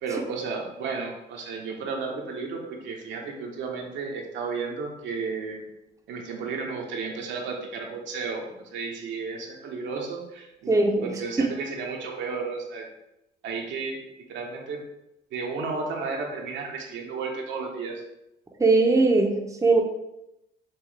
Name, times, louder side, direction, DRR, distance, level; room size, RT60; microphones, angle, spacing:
voice 1, 0.0-5.6 6.1-12.9 13.4-14.8 15.3-18.0, right 4 dB, 70° right, 0 dB, 1.0 m, -33 dB
voice 2, 10.7-11.1 18.6-19.8, right 3 dB, 15° right, 2 dB, 0.7 m, -20 dB
5.8 x 2.7 x 3.2 m, 0.88 s
supercardioid pair, 70°, 20 cm